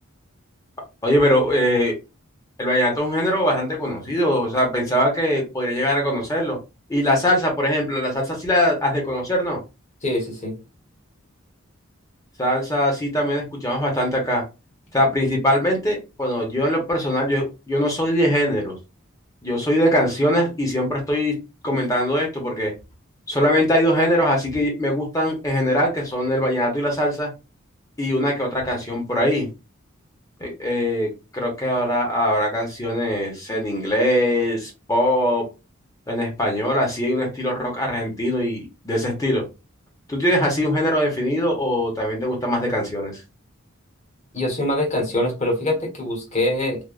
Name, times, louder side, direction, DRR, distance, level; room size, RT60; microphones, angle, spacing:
voice 1, 1.0-1.9 2.6-6.6 6.9-9.6 12.4-14.4 14.9-18.8 19.4-21.3 21.6-22.7 23.3-27.3 28.0-29.5 30.4-35.5 36.1-39.4 40.1-43.1, equal, 15° left, 0 dB, 0.8 m, -22 dB
voice 2, 10.0-10.6 44.3-46.8, left 1 dB, 35° left, -1 dB, 1.1 m, -24 dB
3.4 x 2.2 x 2.4 m, 0.28 s
head